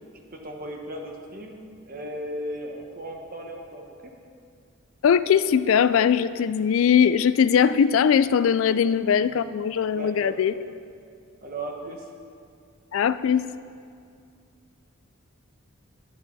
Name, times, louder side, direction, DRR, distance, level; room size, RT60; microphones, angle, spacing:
voice 1, 0.3-1.6 1.9-4.1 8.7-8.8 9.2-9.4 9.9-10.4 11.4-12.1, right 1 dB, 40° right, 1 dB, 1.3 m, -36 dB
voice 2, 5.0-10.5 12.9-13.5, left 7 dB, 65° left, 14 dB, 0.3 m, -20 dB
11.5 x 11.0 x 4.1 m, 2.3 s
head